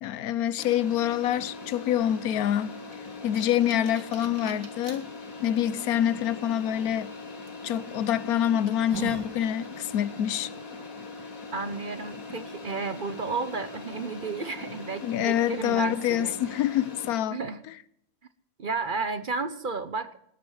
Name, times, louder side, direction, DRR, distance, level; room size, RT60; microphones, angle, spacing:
voice 1, 0.0-2.8 3.2-5.0 5.4-7.1 7.6-10.5 15.0-17.4, left 11 dB, 90° left, 1.2 m, -26 dB
sound 1, 0.6-17.1, left 3 dB, 70° left, 2.5 m, -41 dB
sound 2, 2.9-5.0 5.6-5.7 7.5-7.7 8.2-8.3 8.7-9.3, right 4 dB, 90° right, 2.3 m, -39 dB
voice 2, 11.5-16.6 17.3-17.6 18.6-20.2, right 4 dB, 40° right, 0.9 m, -32 dB
19.0 x 8.6 x 6.3 m
omnidirectional pair, 1.5 m